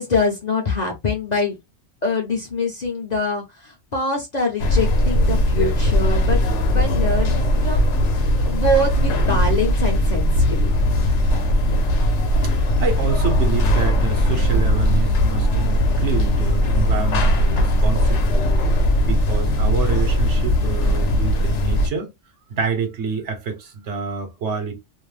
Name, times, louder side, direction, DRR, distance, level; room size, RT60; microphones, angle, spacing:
voice 1, 0.0-1.5 2.0-6.4 6.7-7.9 8.4-10.7, left 2 dB, 45° left, 0.6 m, -24 dB
sound 1, 4.6-21.9, equal, 70° left, 1.0 m, -19 dB
voice 2, 12.4-18.4 19.0-22.1 22.5-24.8, right 5 dB, 70° right, 1.0 m, -27 dB
2.5 x 2.1 x 3.1 m
omnidirectional pair, 1.3 m